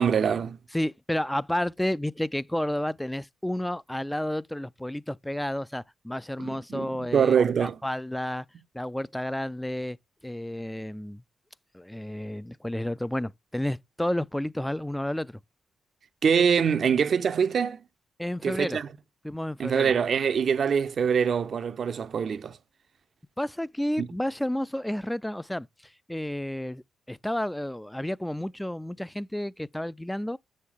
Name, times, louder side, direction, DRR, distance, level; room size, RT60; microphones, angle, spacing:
voice 1, 0.0-0.6 6.4-7.8 16.2-17.8 18.4-18.9 19.6-22.6 24.0-24.1, right 7 dB, 60° right, 0.6 m, -24 dB
voice 2, 0.7-8.5 8.7-10.0 10.2-11.2 11.7-15.4 18.2-18.8 19.2-19.9 23.4-25.7 26.1-30.4, left 1 dB, 5° left, 0.4 m, -31 dB
6.9 x 6.5 x 3.5 m
hypercardioid pair, 45°, 0 cm